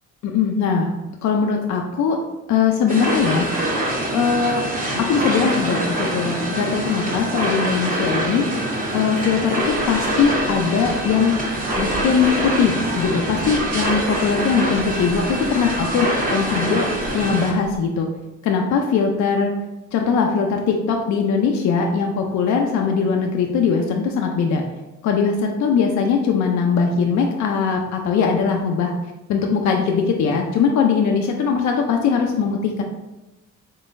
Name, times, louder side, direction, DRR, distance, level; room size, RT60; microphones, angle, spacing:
voice 1, 0.2-0.9 1.2-2.2 2.5-3.5 4.1-4.6 5.0-8.5 8.9-11.4 11.8-18.1 18.4-19.5 19.9-24.6 25.0-28.9 29.3-32.8, left 6 dB, 70° left, 2 dB, 0.5 m, -20 dB
sound 1, 2.9-17.5, right 1 dB, 30° right, 0.9 m, -24 dB
Bird, 9.6-17.8, right 1 dB, 65° right, 1.3 m, -39 dB
3.7 x 3.7 x 2.5 m, 1.0 s
cardioid pair, 90°, 30 cm